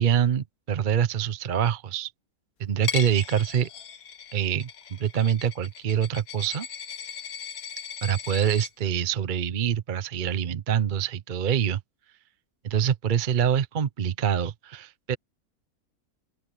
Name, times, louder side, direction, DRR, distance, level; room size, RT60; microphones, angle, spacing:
voice 1, 0.0-2.1 2.6-3.7 4.3-6.7 8.0-11.8 12.6-15.2, right 8 dB, 45° right, 0.7 m, -25 dB
Coin (dropping), 2.8-8.7, left 8 dB, 70° left, 1.5 m, -37 dB
open air
omnidirectional pair, 1.6 m